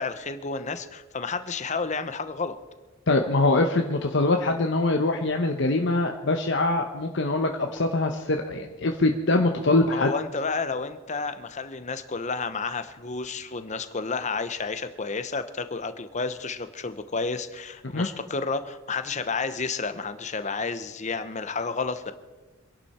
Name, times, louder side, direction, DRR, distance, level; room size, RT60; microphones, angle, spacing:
voice 1, 0.0-2.6 9.9-22.1, left 4 dB, 35° left, 10 dB, 1.0 m, -31 dB
voice 2, 3.1-10.1 17.9-18.1, left 2 dB, 65° left, 3 dB, 1.0 m, -23 dB
25.5 x 11.5 x 4.4 m, 1.2 s
head